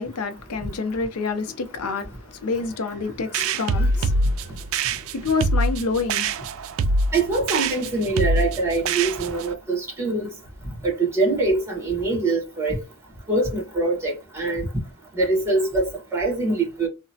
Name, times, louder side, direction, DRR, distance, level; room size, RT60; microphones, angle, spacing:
voice 1, 0.0-6.5, left 4 dB, 85° left, 0.5 m, -28 dB
sound 1, 3.3-9.5, right 2 dB, 65° right, 0.3 m, -24 dB
voice 2, 7.1-10.3 10.8-12.8 13.3-14.7 15.2-16.9, right 2 dB, 10° right, 1.1 m, -23 dB
2.8 x 2.1 x 2.7 m
head